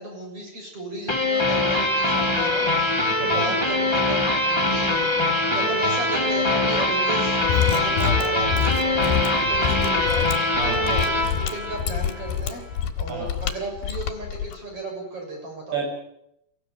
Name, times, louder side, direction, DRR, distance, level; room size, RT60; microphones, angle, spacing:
voice 1, 0.0-10.3 10.9-12.6 13.0-15.8, right 2 dB, 30° right, 2 dB, 7.4 m, -34 dB
sound 1, 1.1-12.3, left 1 dB, 15° left, 0.8 m, -23 dB
voice 2, 3.2-3.6 5.5-5.7 10.6-11.1 13.1-13.3 15.7-15.8, right 5 dB, 65° right, 2 dB, 9.1 m, -31 dB
Mechanisms, 7.4-14.6, left 10 dB, 65° left, 3.5 m, -27 dB
24.0 x 16.0 x 9.6 m, 0.79 s
omnidirectional pair, 5.3 m